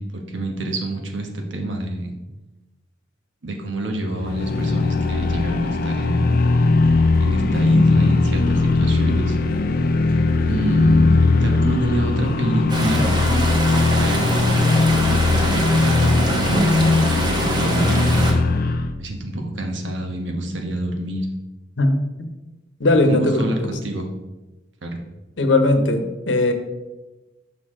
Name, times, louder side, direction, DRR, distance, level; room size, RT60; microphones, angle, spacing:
voice 1, 0.0-2.2 3.4-6.4 7.2-9.4 10.5-13.1 14.0-18.4 19.0-21.3 22.9-24.1 24.8-25.0, right 1 dB, 90° right, 2 dB, 1.1 m, -27 dB
sound 1, 4.2-18.9, left 3 dB, 50° left, 0.5 m, -19 dB
sound 2, 12.7-18.3, right 1 dB, 25° right, 0.9 m, -25 dB
voice 2, 22.8-23.7 25.4-26.5, left 2 dB, 80° left, 6 dB, 0.9 m, -18 dB
6.3 x 5.7 x 3.7 m, 1.1 s
head